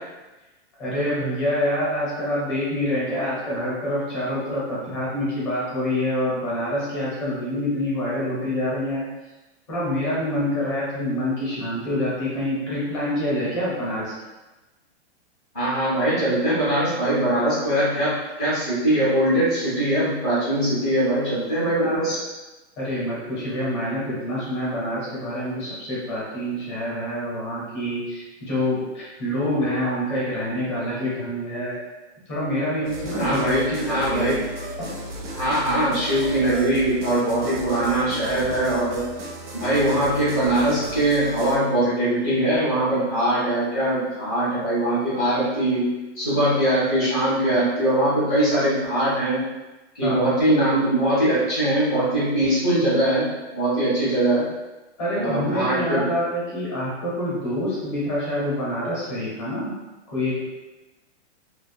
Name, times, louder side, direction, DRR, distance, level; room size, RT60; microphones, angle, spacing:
voice 1, 0.8-9.0 9.7-14.1 22.8-31.8 32.3-34.4 34.8-34.9 50.0-50.3 55.0-59.7 60.1-60.4, left 1 dB, 25° left, -8 dB, 0.7 m, -26 dB
voice 2, 15.5-22.2 33.2-34.4 35.3-39.0 39.5-45.8 46.1-49.4 49.9-54.5 55.1-56.0, right 1 dB, 10° left, -17 dB, 0.4 m, -22 dB
sound 1, 32.8-41.6, right 2 dB, 85° right, 0.6 m, -34 dB
2.3 x 2.3 x 2.5 m, 1.1 s
hypercardioid pair, 175°, 35 cm